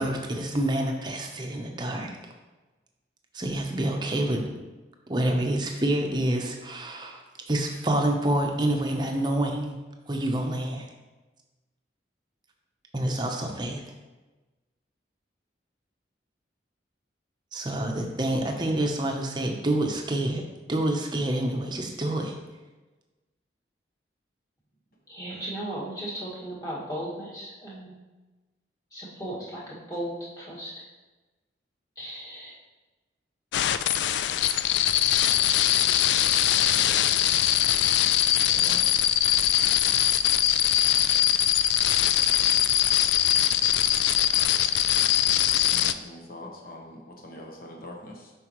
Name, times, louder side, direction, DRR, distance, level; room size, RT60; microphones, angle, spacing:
voice 1, 0.0-2.1 3.3-4.4 5.1-9.8 10.1-10.9 12.9-13.8 17.5-20.4 20.7-22.3, right 1 dB, 25° right, 2 dB, 0.7 m, -27 dB
voice 2, 25.1-27.9 28.9-30.8 31.9-32.5, right 1 dB, 20° left, -8 dB, 1.8 m, -36 dB
sound 1, 33.5-45.9, left 11 dB, 75° left, 0.3 m, -22 dB
voice 3, 38.5-38.9 45.7-48.3, left 1 dB, 50° left, 0 dB, 1.1 m, -43 dB
7.5 x 5.4 x 3.0 m, 1.2 s
head